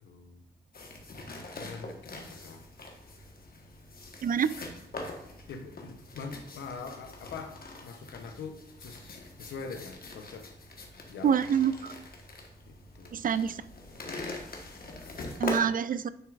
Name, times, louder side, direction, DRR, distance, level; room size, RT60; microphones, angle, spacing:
voice 1, 0.0-0.4 1.6-2.6 5.5-10.5 11.1-11.4 12.7-13.2 15.0-15.3, left 5 dB, 85° left, 7 dB, 0.7 m, -43 dB
sound 1, 0.7-15.6, left 2 dB, 55° left, 1.2 m, -43 dB
voice 2, 4.2-4.5 11.2-11.9 13.1-13.6 15.4-16.1, right 7 dB, 50° right, 16 dB, 0.4 m, -26 dB
9.6 x 4.4 x 2.4 m, 0.78 s
supercardioid pair, 50°, 19 cm